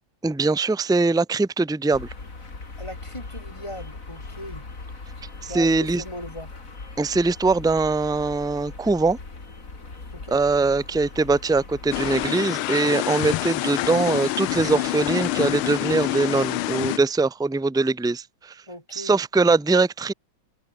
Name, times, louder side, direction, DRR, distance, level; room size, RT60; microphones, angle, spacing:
voice 1, 0.2-2.1 5.4-6.0 7.0-9.2 10.3-18.5 18.9-20.1, right 3 dB, 5° right, 0.5 m, -22 dB
sound 1, 1.9-12.3, left 3 dB, 40° left, 3.7 m, -40 dB
voice 2, 2.8-4.6 5.5-6.5 10.1-10.4 18.7-19.2, equal, 15° left, 6.1 m, -38 dB
sound 2, 11.9-17.0, left 16 dB, 85° left, 1.5 m, -26 dB
omnidirectional pair, 2.3 m